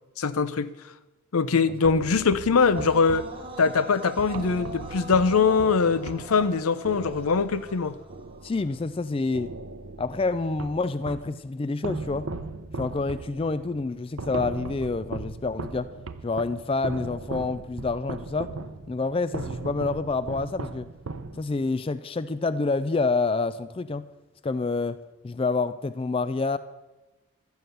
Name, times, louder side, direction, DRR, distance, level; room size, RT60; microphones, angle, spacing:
voice 1, 0.2-0.7 1.3-3.3 3.6-7.9, left 5 dB, 90° left, 0.6 m, -22 dB
sound 1, 1.8-9.0 9.3-11.4 11.8-21.8, right 3 dB, 75° right, 0.7 m, -38 dB
sound 2, 2.7-8.8, right 2 dB, 25° right, 0.9 m, -42 dB
voice 2, 8.4-9.6 10.0-12.3 12.8-15.9 16.2-18.5 18.9-20.9 21.4-24.1 24.4-26.6, left 3 dB, 25° left, 0.3 m, -28 dB
12.5 x 9.3 x 6.7 m
head